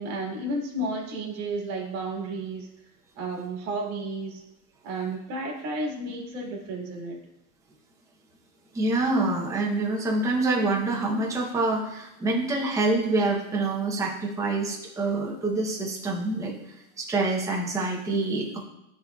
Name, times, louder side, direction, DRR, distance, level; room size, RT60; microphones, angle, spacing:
voice 1, 0.0-2.7 3.2-4.4 4.8-7.2, right 2 dB, 35° right, -1 dB, 1.8 m, -32 dB
voice 2, 8.7-16.5 17.0-18.6, right 2 dB, 5° right, -2 dB, 0.7 m, -26 dB
10.5 x 4.0 x 2.3 m, 0.88 s
supercardioid pair, 155°, 42 cm